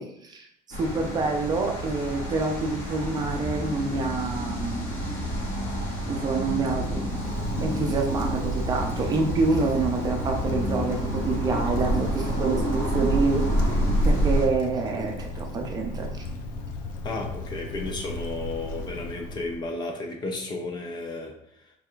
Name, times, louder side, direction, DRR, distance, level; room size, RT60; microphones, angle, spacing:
voice 1, 0.0-4.9 6.1-13.8 14.0-16.2, right 3 dB, 25° right, 2 dB, 0.5 m, -27 dB
sound 1, 0.7-14.5, equal, 85° left, 1.6 m, -28 dB
Wind, 6.9-19.7, left 1 dB, 70° left, 0.6 m, -36 dB
voice 2, 17.0-21.3, left 2 dB, 30° left, 3 dB, 0.5 m, -33 dB
4.6 x 3.4 x 2.4 m, 0.72 s
cardioid pair, 165°, 15 cm